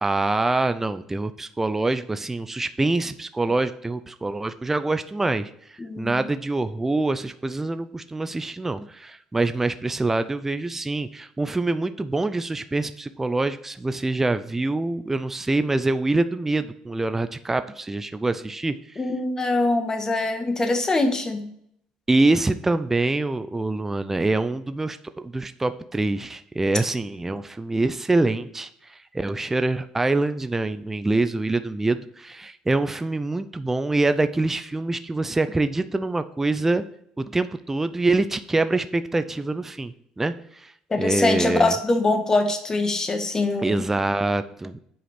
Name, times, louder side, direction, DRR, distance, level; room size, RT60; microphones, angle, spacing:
voice 1, 0.0-19.0 22.1-25.0 25.2-36.8 37.2-40.7 41.0-41.7 43.6-44.8, right 2 dB, 10° right, 11 dB, 0.4 m, -25 dB
voice 2, 5.8-6.2 19.0-21.4 40.9-43.9, left 2 dB, 25° left, 6 dB, 1.4 m, -23 dB
7.8 x 5.0 x 5.8 m, 0.70 s
cardioid pair, 100°, 3 cm